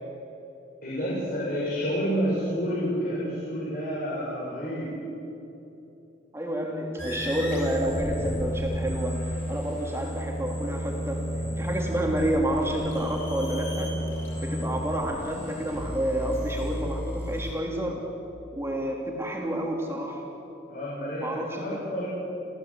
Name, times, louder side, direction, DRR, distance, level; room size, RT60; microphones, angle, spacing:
voice 1, 0.8-4.9 20.7-22.1, equal, 45° left, -7 dB, 6.2 m, -29 dB
voice 2, 6.3-11.2 11.6-13.9 14.4-18.0 18.5-20.2 21.2-21.9, right 1 dB, 15° right, 0 dB, 3.3 m, -29 dB
sound 1, 7.0-17.5, equal, 10° left, 5.3 m, -32 dB
28.5 x 16.0 x 8.5 m, 3.0 s
head